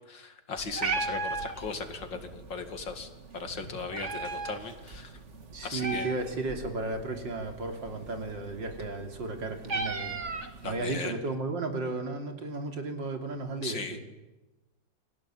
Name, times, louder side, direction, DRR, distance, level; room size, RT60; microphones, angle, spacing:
voice 1, 0.1-5.1 5.6-6.1 10.6-11.1 13.6-14.0, left 4 dB, 90° left, 8 dB, 3.1 m, -38 dB
Meow, 0.6-11.0, right 3 dB, 40° right, 2.1 m, -38 dB
voice 2, 3.5-3.8 5.5-10.2 10.6-14.0, right 3 dB, 90° right, 5 dB, 3.8 m, -34 dB
28.5 x 20.5 x 9.1 m, 1.1 s
omnidirectional pair, 1.9 m